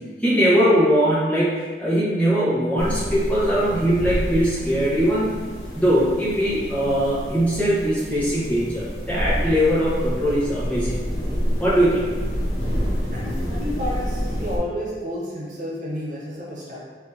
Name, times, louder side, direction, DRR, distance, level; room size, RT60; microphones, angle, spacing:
voice 1, 0.2-5.4 5.7-10.9 11.6-12.1, equal, 10° left, -10 dB, 1.1 m, -21 dB
sound 1, 2.8-14.6, equal, 55° left, 1.0 m, -28 dB
voice 2, 13.1-16.8, equal, 45° right, -5 dB, 0.6 m, -31 dB
4.3 x 2.9 x 2.7 m, 1.5 s
head